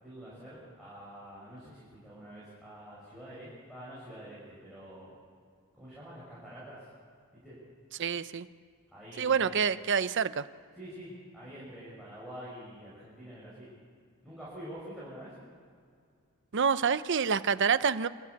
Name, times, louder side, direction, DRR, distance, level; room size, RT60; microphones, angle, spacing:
voice 1, 0.0-5.1 5.7-6.9 7.3-7.6 8.9-9.7 10.7-13.7 14.2-15.3, equal, ahead, -9 dB, 6.5 m, -46 dB
voice 2, 8.0-8.5 9.2-10.5 16.5-18.1, right 6 dB, 55° right, 13 dB, 0.7 m, -27 dB
26.5 x 13.5 x 8.2 m, 2.2 s
head